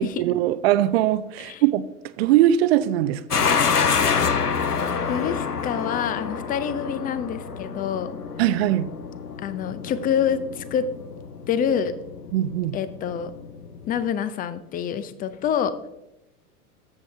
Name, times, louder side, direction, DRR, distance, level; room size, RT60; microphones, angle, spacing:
voice 1, 0.0-1.8 2.2-3.6 8.4-8.9 12.3-12.8, right 12 dB, 45° right, 0.5 m, -21 dB
sound 1, 3.3-14.1, left 6 dB, 90° left, 0.7 m, -27 dB
voice 2, 5.1-8.2 9.4-10.9 11.5-11.9 12.7-13.3 13.9-15.7, left 8 dB, 20° left, 0.6 m, -26 dB
13.5 x 7.7 x 3.3 m
figure-of-eight pair, 90°, 45 cm